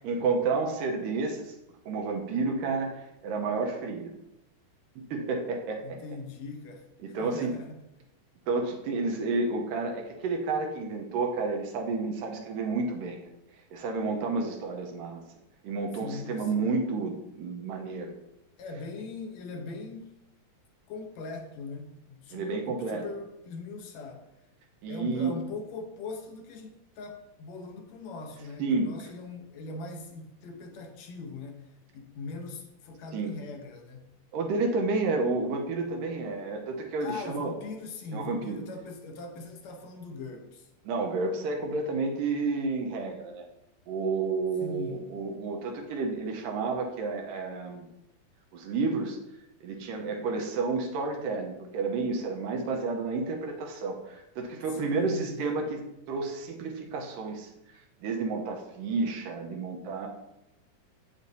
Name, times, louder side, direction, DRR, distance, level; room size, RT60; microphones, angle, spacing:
voice 1, 0.0-1.5 1.9-4.1 5.0-6.0 7.1-7.5 8.5-13.2 13.7-15.2 15.6-18.1 22.3-23.0 24.8-25.3 28.6-28.9 33.1-33.3 34.3-37.5 38.1-38.6 40.9-43.5 43.9-47.9 48.5-49.2 49.6-57.5 58.0-60.1, right 3 dB, 85° right, 2 dB, 2.5 m, -30 dB
voice 2, 5.8-7.8 16.0-16.8 18.6-20.2 20.9-24.3 24.9-34.1 37.0-40.7 44.6-45.1 54.7-55.4, left 3 dB, 70° left, 3 dB, 1.8 m, -41 dB
8.3 x 7.1 x 2.7 m, 0.89 s
omnidirectional pair, 3.8 m